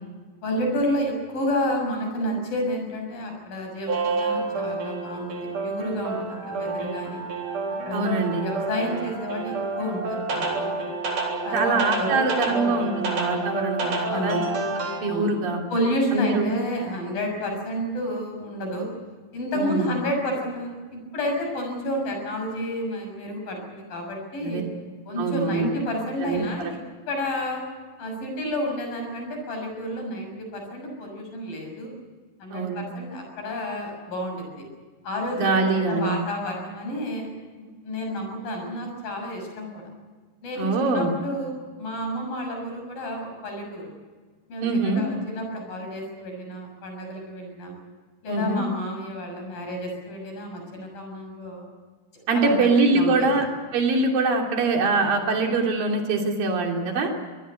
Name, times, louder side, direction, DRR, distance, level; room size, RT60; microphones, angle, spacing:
voice 1, 0.4-7.2 7.9-10.8 11.5-12.9 14.1-14.5 15.1-15.3 15.7-18.9 19.3-24.6 25.1-26.8 27.1-27.6 28.0-31.9 32.4-34.7 35.0-37.3 37.8-39.8 40.4-43.9 44.5-47.7 48.2-51.7 52.3-53.3, equal, 85° left, 2 dB, 8.3 m, -30 dB
sound 1, 3.9-15.0, right 3 dB, 65° right, 5.3 m, -29 dB
voice 2, 7.9-8.5 11.5-14.4 15.0-15.6 16.1-16.5 19.5-19.9 24.4-24.6 25.2-25.7 26.1-26.7 32.5-32.8 35.3-36.2 37.6-37.7 40.6-41.1 44.6-45.0 48.3-48.6 52.3-57.1, right 3 dB, 85° right, 2 dB, 4.7 m, -23 dB
25.0 x 19.0 x 8.3 m, 1.5 s
omnidirectional pair, 3.9 m